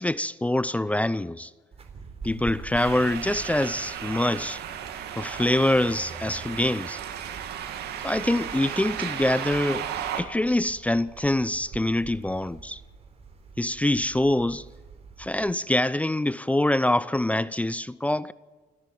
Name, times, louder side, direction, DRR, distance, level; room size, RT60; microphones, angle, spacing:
voice 1, 0.0-1.5 2.2-4.6 5.2-7.0 8.0-9.9 10.2-12.8 13.6-14.7 15.2-18.3, left 1 dB, 10° left, 0.5 m, -25 dB
sound 1, 1.7-15.5, right 4 dB, 35° right, 3.9 m, -46 dB
sound 2, 2.7-10.2, right 9 dB, 75° right, 2.5 m, -35 dB
28.5 x 11.0 x 9.3 m
cardioid pair, 110°, 17 cm